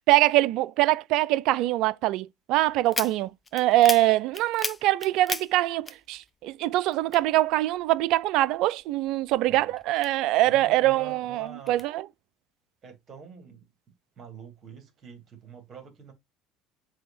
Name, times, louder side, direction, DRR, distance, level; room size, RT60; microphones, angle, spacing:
voice 1, 0.1-12.1, right 16 dB, 60° right, 0.3 m, -23 dB
sound 1, 2.8-6.5 6.8-8.1 8.5-10.6 11.1-11.8, left 4 dB, 20° left, 0.5 m, -36 dB
voice 2, 10.4-11.8 12.8-13.7 14.2-16.1, right 6 dB, 40° right, 2.4 m, -46 dB
7.6 x 2.8 x 2.5 m
hypercardioid pair, 70°, 0 cm